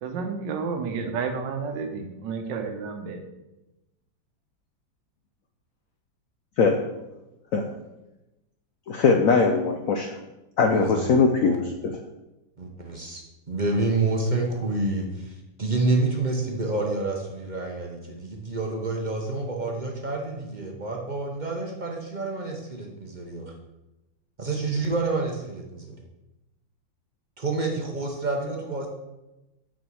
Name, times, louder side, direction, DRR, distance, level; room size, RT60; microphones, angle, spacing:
voice 1, 0.0-3.2, right 5 dB, 75° right, 5 dB, 1.5 m, -31 dB
voice 2, 8.9-10.2 10.6-11.6, left 4 dB, 75° left, 4 dB, 0.7 m, -20 dB
voice 3, 12.6-13.2 13.5-23.4 24.4-26.0 27.4-28.9, right 3 dB, 50° right, 1 dB, 0.5 m, -28 dB
6.0 x 4.5 x 6.2 m, 0.99 s
omnidirectional pair, 2.1 m